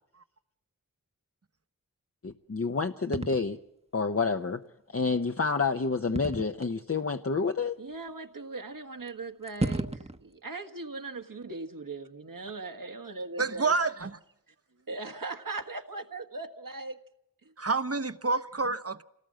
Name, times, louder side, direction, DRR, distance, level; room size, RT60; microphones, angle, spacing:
voice 1, 2.2-3.6 3.9-4.6 4.9-7.8, left 4 dB, 45° left, 0.8 m, -28 dB
sound 1, 3.1-3.4 6.1-6.7 7.6-7.7 9.1-9.2 9.5-10.2, right 2 dB, 20° right, 1.0 m, -32 dB
voice 2, 7.8-13.7 14.5-17.0 17.4-17.5, right 3 dB, 75° right, 1.7 m, -39 dB
voice 3, 13.4-14.2 17.6-19.0, right 4 dB, 45° right, 0.9 m, -28 dB
27.5 x 18.5 x 7.6 m
wide cardioid pair, 55°, 33 cm